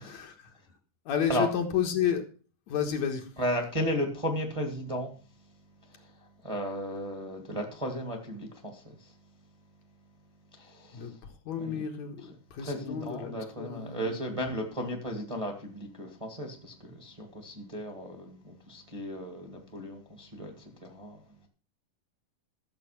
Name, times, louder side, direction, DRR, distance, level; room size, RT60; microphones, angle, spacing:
voice 1, 1.1-2.2 2.7-3.3 10.9-14.6 14.8-15.0, left 8 dB, 65° left, 2.6 m, -32 dB
voice 2, 3.4-5.1 6.4-9.1 10.6-11.1 11.6-11.8 12.6-21.2, equal, 15° right, 1.6 m, -35 dB
13.5 x 7.5 x 5.9 m
omnidirectional pair, 3.6 m